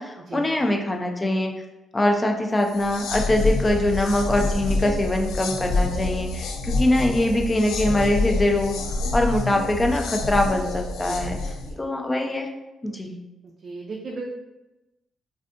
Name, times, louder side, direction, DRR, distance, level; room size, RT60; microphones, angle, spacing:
voice 1, 0.0-1.5 1.9-8.8 9.1-11.4 11.8-12.5 12.8-13.2, left 1 dB, 20° left, 3 dB, 0.4 m, -23 dB
sound 1, 2.7-11.7, left 3 dB, 85° left, 0.3 m, -27 dB
voice 2, 11.0-11.9 13.4-14.2, right 3 dB, 50° right, -2 dB, 0.4 m, -38 dB
3.3 x 2.6 x 2.4 m, 1.0 s
cardioid pair, 85°, 0 cm